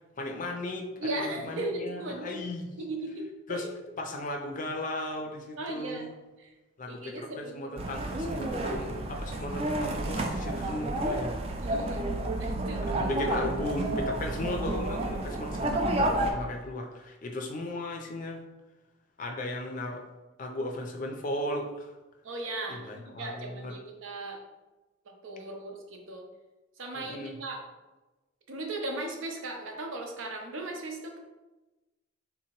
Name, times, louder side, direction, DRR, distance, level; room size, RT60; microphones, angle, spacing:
voice 1, 0.2-2.7 3.5-3.7 4.0-6.1 6.8-11.3 12.8-18.4 19.2-20.0 20.4-21.9 22.7-23.7 26.9-27.3, left 1 dB, 40° left, 2 dB, 0.4 m, -36 dB
voice 2, 1.0-2.5 2.8-3.7 5.6-6.1 6.4-6.5 6.9-7.7 11.6-12.1 12.4-12.8 13.4-13.5 22.2-24.4 25.1-26.3 26.8-27.6 28.5-31.2, right 2 dB, 80° right, 2 dB, 0.6 m, -37 dB
sound 1, 7.8-16.3, right 1 dB, 30° right, 0.3 m, -30 dB
3.7 x 2.8 x 2.9 m, 1.1 s
head